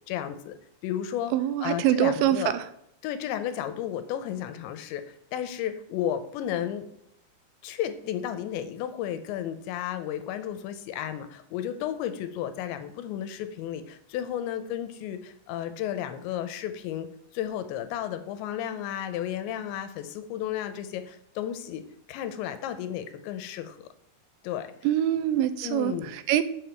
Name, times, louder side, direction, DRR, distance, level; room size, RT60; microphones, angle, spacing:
voice 1, 0.1-0.6 0.8-1.3 1.6-2.5 3.0-6.9 7.6-17.1 17.3-23.9 24.4-24.7 25.6-26.1, left 10 dB, 80° left, 10 dB, 2.9 m, -33 dB
voice 2, 1.3-2.6 24.8-26.4, right 11 dB, 85° right, 11 dB, 2.8 m, -24 dB
6.9 x 6.9 x 4.4 m, 0.74 s
omnidirectional pair, 5.3 m